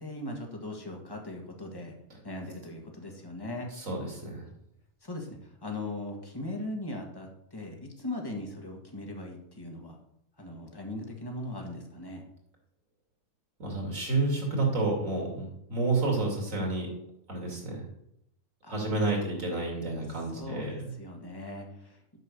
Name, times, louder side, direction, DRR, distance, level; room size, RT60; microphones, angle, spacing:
voice 1, 0.0-1.9 2.2-3.7 5.0-10.0 10.4-12.2 18.6-18.8 20.4-22.0, left 1 dB, 20° left, 1 dB, 1.6 m, -39 dB
voice 2, 3.7-4.5 13.6-16.9 17.3-17.8 18.7-20.9, right 2 dB, 80° right, 0 dB, 3.1 m, -30 dB
8.2 x 5.4 x 6.6 m, 0.76 s
omnidirectional pair, 1.3 m